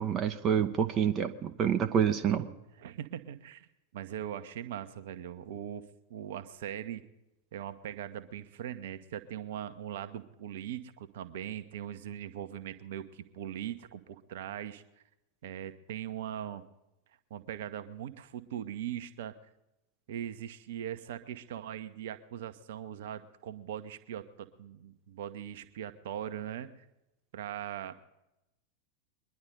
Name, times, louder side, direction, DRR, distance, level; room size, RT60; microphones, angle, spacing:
voice 1, 0.0-2.5, right 8 dB, 30° right, 7 dB, 0.8 m, -27 dB
voice 2, 2.3-3.7 3.9-5.8 6.1-7.0 7.5-14.8 15.4-16.6 17.3-19.3 20.1-26.7 27.3-27.9, right 10 dB, 55° right, 9 dB, 0.9 m, -40 dB
23.0 x 11.0 x 3.9 m, 0.91 s
figure-of-eight pair, 90°, 0 cm